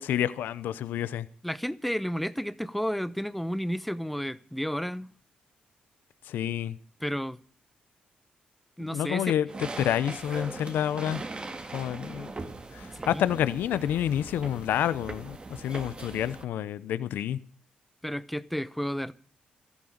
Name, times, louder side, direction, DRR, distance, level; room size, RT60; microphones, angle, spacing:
voice 1, 0.0-1.3 6.3-6.8 8.8-11.2 11.7-12.3 12.7-17.4, left 10 dB, 80° left, 0.7 m, -29 dB
voice 2, 1.4-5.1 7.0-7.4 8.8-9.3 13.0-13.2 18.0-19.1, equal, ahead, 0.9 m, -32 dB
sound 1, 9.5-16.4, right 3 dB, 30° right, 1.9 m, -40 dB
14.0 x 11.5 x 6.5 m
supercardioid pair, 60°, 3 cm